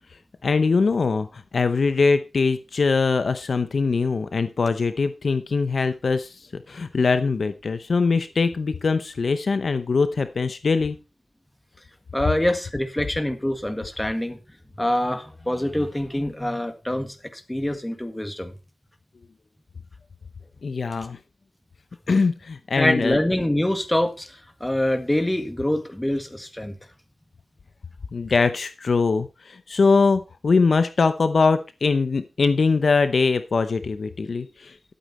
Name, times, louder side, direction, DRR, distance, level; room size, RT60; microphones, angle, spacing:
voice 1, 0.4-11.0 20.6-21.2 22.1-23.2 28.1-34.8, left 4 dB, 55° left, 11 dB, 0.7 m, -22 dB
voice 2, 12.1-14.4 14.8-18.5 22.7-26.7, left 1 dB, 10° left, 8 dB, 1.8 m, -25 dB
12.5 x 8.4 x 4.2 m, 0.30 s
wide cardioid pair, 120°, 0 cm